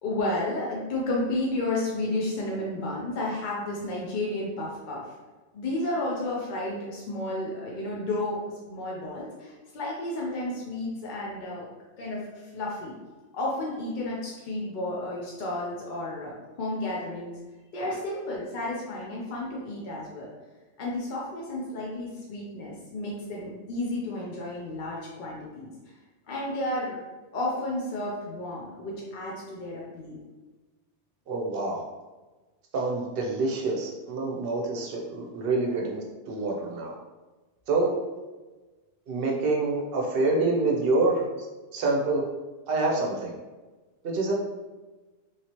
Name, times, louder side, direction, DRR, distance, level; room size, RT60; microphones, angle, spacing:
voice 1, 0.0-5.1 5.5-11.7 12.0-12.9 13.3-17.4 17.7-20.3 20.8-25.7 26.3-27.0 27.3-30.2 44.3-44.4, left 2 dB, 50° left, -4 dB, 0.6 m, -32 dB
voice 2, 31.3-31.8 32.7-36.9 37.7-37.9 39.1-41.2 41.7-42.2 42.7-43.3 44.0-44.3, right 3 dB, 60° right, 0 dB, 0.8 m, -26 dB
3.1 x 2.8 x 2.9 m, 1.2 s
omnidirectional pair, 1.2 m